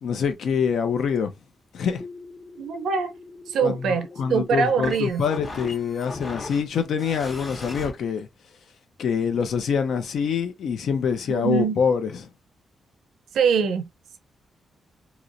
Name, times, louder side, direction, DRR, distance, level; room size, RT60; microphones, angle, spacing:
voice 1, 0.0-1.3 1.7-2.0 3.6-8.3 9.0-12.3, left 6 dB, 65° left, 0.6 m, -25 dB
sound 1, 2.0-7.9, left 3 dB, 35° left, 1.0 m, -39 dB
voice 2, 2.6-3.1 3.5-5.3 11.3-11.8 13.3-13.9, right 6 dB, 75° right, 0.6 m, -23 dB
3.0 x 2.9 x 2.6 m
wide cardioid pair, 165°, 0 cm